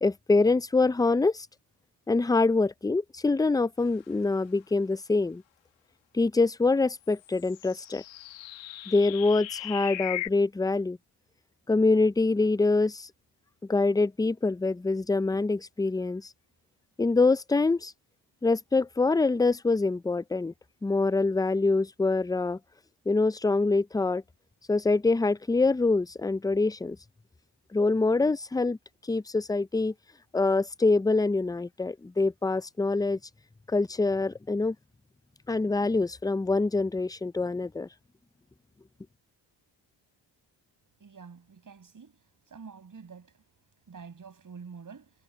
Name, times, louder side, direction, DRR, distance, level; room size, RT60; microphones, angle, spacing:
voice 1, 0.0-1.5 2.1-5.4 6.1-8.0 8.9-11.0 11.7-13.1 13.7-16.3 17.0-17.9 18.4-20.5 20.8-22.6 23.1-24.2 24.7-27.0 27.7-28.8 29.1-29.9 30.3-33.2 33.7-34.8 35.5-37.9, left 3 dB, 10° left, 0.6 m, -25 dB
sound 1, 7.1-10.3, left 15 dB, 90° left, 1.5 m, -38 dB
voice 2, 41.0-42.1 42.5-43.3 43.9-45.1, right 5 dB, 45° right, 6.1 m, -47 dB
supercardioid pair, 65°, 44 cm